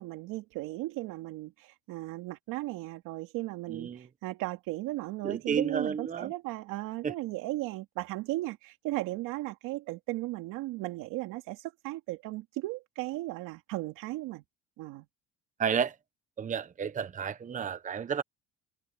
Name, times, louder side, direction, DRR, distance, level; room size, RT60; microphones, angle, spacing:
voice 1, 0.0-14.4 14.8-15.1, right 19 dB, 80° right, 2.5 m, -36 dB
voice 2, 3.7-4.0 5.2-6.3 7.0-7.1 15.6-15.9 16.4-18.2, right 7 dB, 25° right, 1.0 m, -31 dB
cardioid pair, 125°, 32 cm